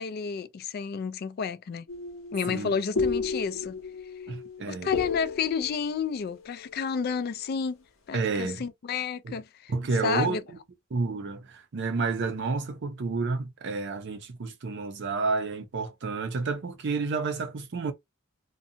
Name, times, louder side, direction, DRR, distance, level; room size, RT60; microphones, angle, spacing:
voice 1, 0.0-1.9 2.3-3.8 4.7-7.8 8.1-9.7 10.0-10.4, left 6 dB, 50° left, 0.3 m, -31 dB
sound 1, 1.9-7.5, left 4 dB, 90° left, 0.7 m, -34 dB
voice 2, 4.3-4.9 8.1-8.6 9.2-9.4 9.7-10.4 10.9-17.9, right 4 dB, 60° right, 0.5 m, -30 dB
2.5 x 2.2 x 2.7 m
head